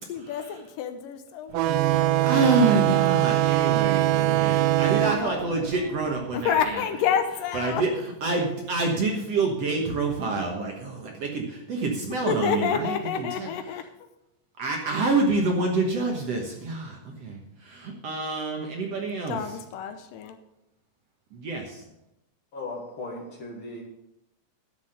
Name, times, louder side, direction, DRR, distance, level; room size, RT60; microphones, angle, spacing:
voice 1, 0.1-2.4 5.0-5.5 6.3-7.8 12.3-13.8 19.3-20.4, left 7 dB, 75° left, 8 dB, 2.4 m, -29 dB
sound 1, 1.5-6.7, right 14 dB, 80° right, 2.2 m, -23 dB
voice 2, 2.2-6.8 7.5-13.5 14.6-19.6 21.3-21.8, right 3 dB, 60° right, 1 dB, 1.9 m, -27 dB
voice 3, 22.5-23.8, left 2 dB, 50° left, 0 dB, 1.8 m, -37 dB
11.5 x 7.1 x 6.6 m, 0.87 s
omnidirectional pair, 4.1 m